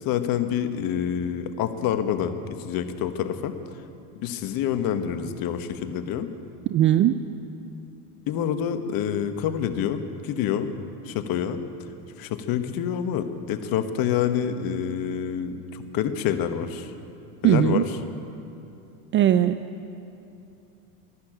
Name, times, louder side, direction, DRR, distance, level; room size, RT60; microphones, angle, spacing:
voice 1, 0.0-3.5 4.1-6.3 8.3-10.7 11.0-11.6 12.2-16.9 17.4-18.0, left 9 dB, 50° left, 8 dB, 1.3 m, -27 dB
voice 2, 6.7-7.2 17.4-17.8 19.1-19.6, right 11 dB, 30° right, 12 dB, 0.3 m, -19 dB
14.0 x 11.5 x 8.9 m, 2.8 s
supercardioid pair, 105°, 46 cm